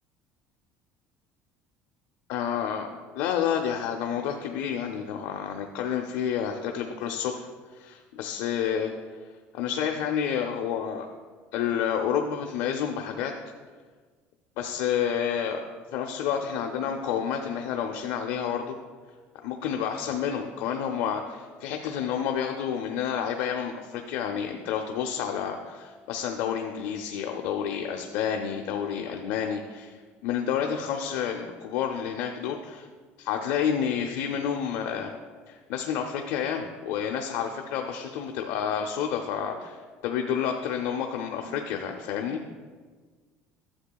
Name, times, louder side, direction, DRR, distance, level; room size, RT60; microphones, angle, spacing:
voice 1, 2.3-2.9 3.1-7.5 7.7-8.9 9.5-11.1 11.5-13.3 14.6-15.6 15.9-18.8 19.4-30.0 30.2-32.9 33.2-35.1 35.5-39.8 40.0-42.4, left 8 dB, 75° left, 2 dB, 0.5 m, -29 dB
11.5 x 7.4 x 2.3 m, 1.5 s
cardioid pair, 155°, 5 cm